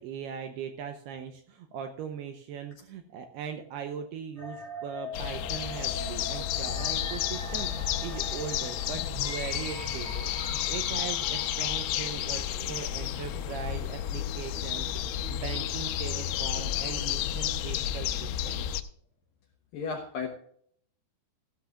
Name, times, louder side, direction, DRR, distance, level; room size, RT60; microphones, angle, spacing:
voice 1, 0.0-7.7 8.0-18.6, right 8 dB, 80° right, 7 dB, 2.4 m, -40 dB
sound 1, 4.4-18.4, equal, 15° right, 2.9 m, -44 dB
sound 2, 5.1-18.8, left 11 dB, 90° left, 3.2 m, -32 dB
voice 2, 19.7-20.3, left 5 dB, 70° left, 2 dB, 2.2 m, -33 dB
15.5 x 12.5 x 2.4 m, 0.63 s
omnidirectional pair, 5.4 m